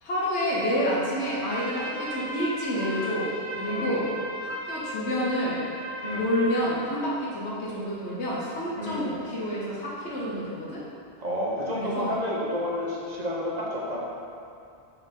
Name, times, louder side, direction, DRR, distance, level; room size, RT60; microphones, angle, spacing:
voice 1, 0.0-4.1 4.4-5.6 6.2-10.8 11.7-12.1, equal, 80° left, -6 dB, 1.2 m, -29 dB
Trumpet, 1.2-6.7, equal, 10° right, 0.8 m, -36 dB
voice 2, 3.7-4.0 6.0-6.2 8.8-9.0 11.2-14.0, equal, 40° right, -5 dB, 1.0 m, -30 dB
4.5 x 4.2 x 5.2 m, 2.4 s
omnidirectional pair, 1.1 m